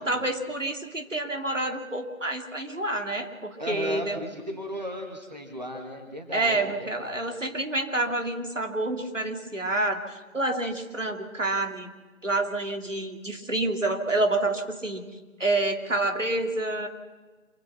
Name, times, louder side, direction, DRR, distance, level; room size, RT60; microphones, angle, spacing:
voice 1, 0.0-4.2 6.3-11.9 12.2-15.0 15.4-16.9, right 2 dB, 65° right, 5 dB, 3.4 m, -28 dB
voice 2, 3.6-7.4, equal, 30° right, 3 dB, 2.4 m, -36 dB
27.0 x 16.5 x 5.9 m, 1.3 s
figure-of-eight pair, 180°, 41 cm